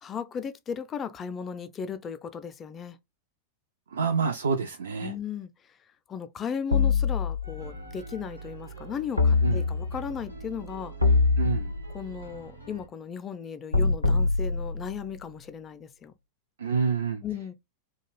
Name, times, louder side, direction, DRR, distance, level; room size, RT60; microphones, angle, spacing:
voice 1, 0.0-3.0 5.0-5.5 6.1-10.9 11.9-16.1 17.2-17.5, left 7 dB, 25° left, 0.4 m, -36 dB
voice 2, 3.9-5.1 9.4-9.6 11.4-11.7 16.6-17.2, right 5 dB, 70° right, 0.3 m, -27 dB
sound 1, 6.7-7.8 9.2-10.1 11.0-12.1 13.7-15.1, left 4 dB, 85° left, 0.5 m, -24 dB
sound 2, 7.4-12.9, right 4 dB, 85° right, 1.0 m, -44 dB
2.4 x 2.2 x 3.0 m
figure-of-eight pair, 90°, 0 cm